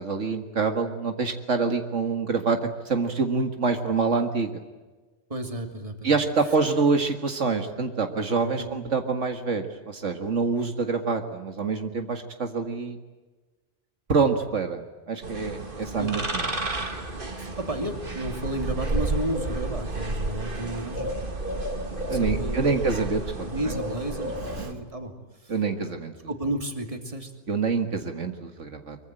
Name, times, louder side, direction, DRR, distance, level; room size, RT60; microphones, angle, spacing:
voice 1, 0.0-2.6 2.9-4.6 6.0-13.0 14.1-16.5 22.1-23.5 24.6-24.7 25.5-26.1 27.5-29.0, right 4 dB, 80° right, 6 dB, 2.2 m, -26 dB
voice 2, 5.3-6.2 8.6-8.8 16.0-16.1 17.4-21.2 22.1-22.8 23.4-25.1 25.4-25.5 26.3-27.3, right 1 dB, 30° right, 5 dB, 2.9 m, -32 dB
sound 1, 15.2-24.7, right 2 dB, 45° right, 2.4 m, -31 dB
24.5 x 23.5 x 9.0 m, 1.2 s
omnidirectional pair, 1.2 m